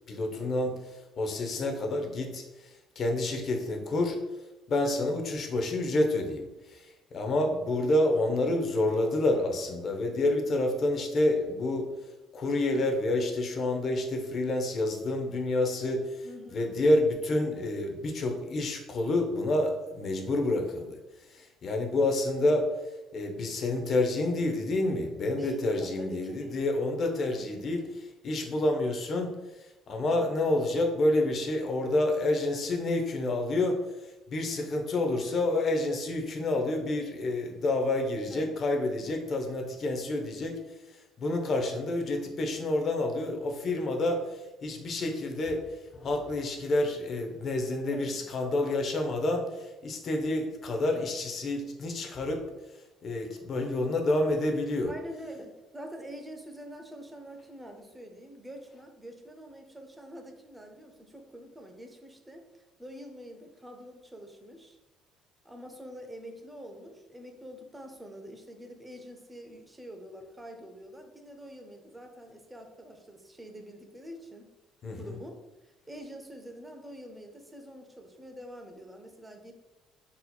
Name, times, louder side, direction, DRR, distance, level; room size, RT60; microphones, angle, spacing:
voice 1, 0.1-4.2 4.7-6.9 7.1-11.9 12.3-16.3 16.5-21.0 21.3-22.7 23.1-29.3 29.9-33.8 34.3-40.6 41.2-45.6 45.9-52.4 53.0-54.9 74.8-75.2, left 2 dB, 40° left, 3 dB, 0.5 m, -28 dB
voice 2, 16.2-16.7 25.4-26.6 30.0-30.3 38.3-38.5 47.9-48.2 54.9-64.8 65.4-74.5 74.9-79.5, equal, 10° right, 4 dB, 0.4 m, -46 dB
4.0 x 2.8 x 2.2 m, 1.0 s
cardioid pair, 135°, 0 cm